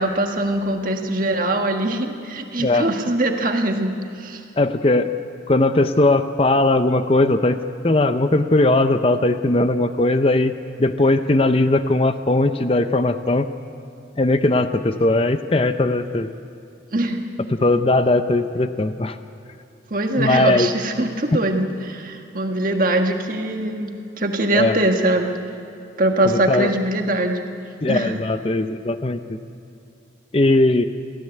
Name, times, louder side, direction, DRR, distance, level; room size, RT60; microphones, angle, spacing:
voice 1, 0.0-4.4 16.9-17.2 19.9-25.3 26.0-27.4 27.8-28.2, right 1 dB, 45° right, 3 dB, 1.6 m, -22 dB
voice 2, 4.6-5.1 5.5-10.5 10.8-13.5 14.2-16.3 17.5-19.2 20.2-20.7 21.3-21.4 24.5-24.8 26.2-26.7 27.8-29.2 30.3-30.9, left 2 dB, 30° left, 9 dB, 0.6 m, -19 dB
23.5 x 15.5 x 8.1 m, 2.7 s
head